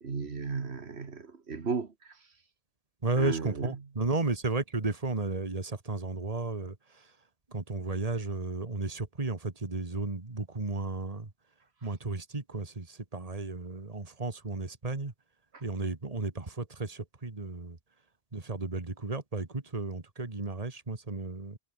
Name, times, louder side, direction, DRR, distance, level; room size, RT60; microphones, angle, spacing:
voice 1, 0.0-2.1 3.2-3.7, right 5 dB, 70° right, 1.9 m, -35 dB
voice 2, 3.0-7.0 7.5-11.3 11.8-15.1 15.6-17.8 18.3-21.6, right 3 dB, 35° right, 2.1 m, -33 dB
omnidirectional pair, 1.1 m